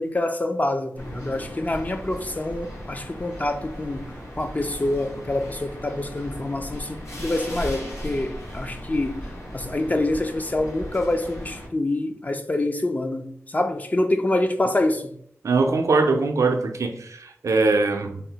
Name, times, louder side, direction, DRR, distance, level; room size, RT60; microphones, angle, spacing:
voice 1, 0.0-4.1 4.4-9.2 9.5-15.1, left 2 dB, 30° left, 0.4 m, -26 dB
sound 1, 1.0-11.7, equal, 70° left, 1.4 m, -37 dB
voice 2, 15.4-18.2, right 3 dB, 75° right, 0.4 m, -22 dB
3.5 x 2.0 x 2.8 m
cardioid pair, 50°, 5 cm